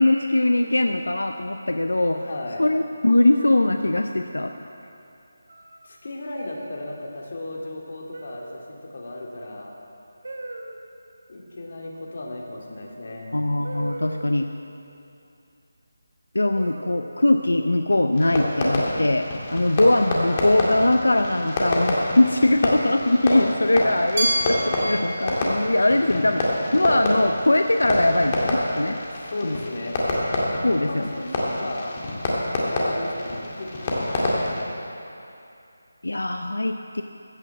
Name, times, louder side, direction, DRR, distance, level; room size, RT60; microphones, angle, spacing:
voice 1, 0.0-2.2 2.6-4.5 13.3-14.5 16.3-19.3 19.5-26.4 26.7-29.0 29.4-29.6 30.6-31.1 36.0-37.0, left 1 dB, 90° left, 6 dB, 0.6 m, -21 dB
voice 2, 2.1-2.6 5.8-9.7 11.3-13.4 19.4-19.7 23.8-23.9 25.6-26.3 29.1-30.0 30.5-32.0 32.7-34.6, left 2 dB, 55° left, -1 dB, 2.2 m, -35 dB
sound 1, 3.4-4.2 5.5-5.9 6.3-6.7 8.1-8.8 10.2-10.8 12.8-12.9 13.6-14.6 16.6-17.6 18.6-19.3 20.5-21.1, right 2 dB, 70° right, 1.2 m, -40 dB
Fireworks, 18.1-34.6, left 1 dB, 30° left, 2.0 m, -27 dB
Glass, 24.2-27.1, right 1 dB, 45° right, 2.3 m, -30 dB
15.0 x 6.5 x 7.6 m, 2.7 s
figure-of-eight pair, 165°, 0 cm